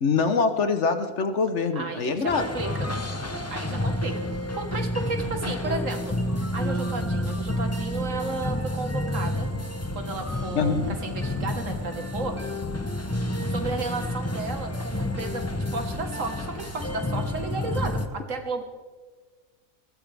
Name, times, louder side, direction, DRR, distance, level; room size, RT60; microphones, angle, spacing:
voice 1, 0.0-2.5 10.6-11.0, left 4 dB, 60° left, 8 dB, 1.3 m, -24 dB
voice 2, 1.8-2.7 3.2-4.3 4.6-9.5 10.0-12.4 13.5-15.5 15.7-18.6, right 3 dB, 65° right, 5 dB, 1.9 m, -33 dB
sound 1, 2.3-18.1, left 1 dB, 15° left, 0.7 m, -29 dB
20.5 x 15.5 x 3.5 m, 1.4 s
omnidirectional pair, 1.4 m